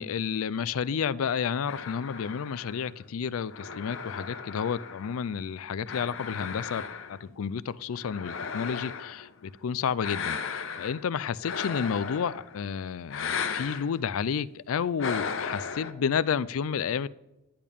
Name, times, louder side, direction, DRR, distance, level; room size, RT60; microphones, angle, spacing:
voice 1, 0.0-6.8 7.1-17.1, left 7 dB, 80° left, 18 dB, 0.4 m, -31 dB
sound 1, 1.7-5.4 5.9-7.3 7.9-9.3 10.0-11.0 11.4-12.6 13.1-13.9 15.0-15.9, left 6 dB, 65° left, 0.8 m, -36 dB
10.5 x 9.9 x 3.6 m, 0.96 s
head